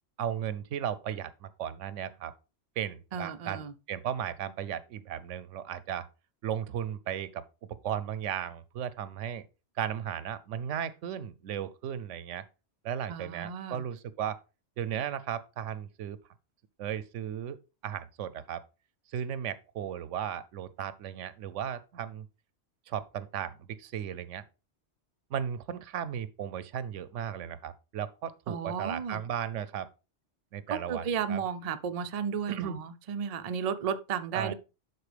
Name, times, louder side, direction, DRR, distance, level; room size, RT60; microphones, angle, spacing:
voice 1, 0.2-2.3 2.8-6.1 6.4-9.4 9.8-12.4 12.8-14.4 14.8-16.2 16.8-17.6 17.8-18.6 19.1-22.3 22.9-24.4 25.3-29.9 30.5-31.4 32.5-32.8 34.3-34.5, right 9 dB, 80° right, 1.0 m, -35 dB
voice 2, 3.1-3.7 13.1-13.8 28.5-29.2 30.7-34.5, right 7 dB, 45° right, 0.5 m, -34 dB
11.5 x 4.2 x 3.3 m
omnidirectional pair, 1.2 m